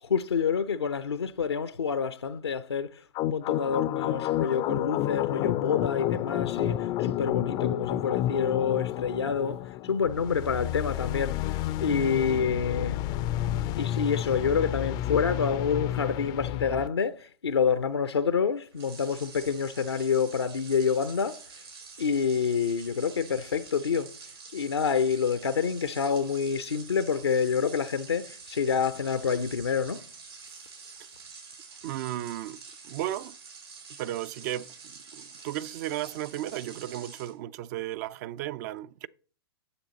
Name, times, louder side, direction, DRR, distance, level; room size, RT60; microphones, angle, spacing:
voice 1, 0.0-13.0 13.8-21.4 22.0-24.2 24.5-30.0, left 6 dB, 85° left, 0.6 m, -28 dB
sound 1, 3.1-16.9, left 13 dB, 30° left, 0.4 m, -30 dB
sound 2, 18.7-37.3, right 5 dB, 80° right, 5.7 m, -47 dB
voice 2, 31.8-33.4 33.9-39.1, right 13 dB, 45° right, 0.5 m, -35 dB
9.7 x 7.9 x 4.0 m
figure-of-eight pair, 110°, 13 cm